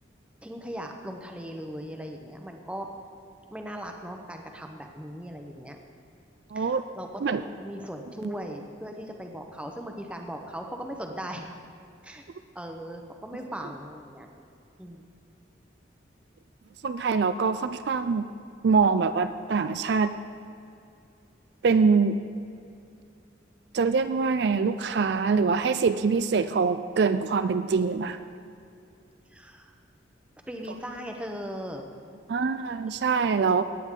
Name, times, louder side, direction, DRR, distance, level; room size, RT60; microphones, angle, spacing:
voice 1, 0.4-2.9 3.5-5.8 6.5-11.5 12.0-12.2 12.5-14.3 14.8-15.0 29.3-29.7 30.5-31.8 32.4-32.5, equal, 5° right, 3 dB, 0.8 m, -38 dB
voice 2, 6.5-6.8 7.2-7.4 16.8-18.3 18.6-20.1 21.6-22.2 23.7-28.2 32.3-33.6, right 5 dB, 60° right, 10 dB, 0.4 m, -24 dB
17.5 x 9.0 x 3.8 m, 2.5 s
head